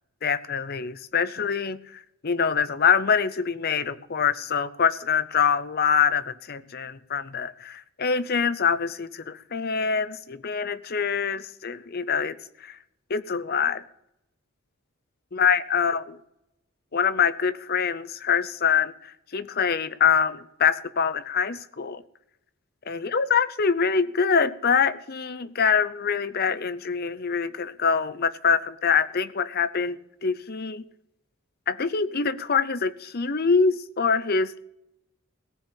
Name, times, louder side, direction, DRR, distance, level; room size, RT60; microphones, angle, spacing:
voice 1, 0.2-1.8 2.2-12.4 12.6-12.8 13.1-13.8 15.3-16.2 16.9-22.0 22.9-30.8 31.7-34.6, left 6 dB, 45° left, 15 dB, 0.6 m, -24 dB
18.0 x 6.9 x 7.0 m, 0.81 s
head